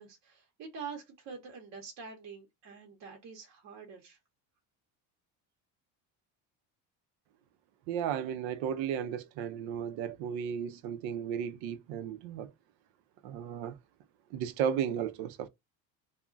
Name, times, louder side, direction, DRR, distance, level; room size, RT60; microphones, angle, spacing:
voice 1, 0.0-4.2, right 5 dB, 45° right, 0.7 m, -46 dB
voice 2, 7.9-12.5 13.2-13.8 14.3-15.5, right 8 dB, 85° right, 0.5 m, -34 dB
2.3 x 2.1 x 3.7 m
cardioid pair, 145°, 38 cm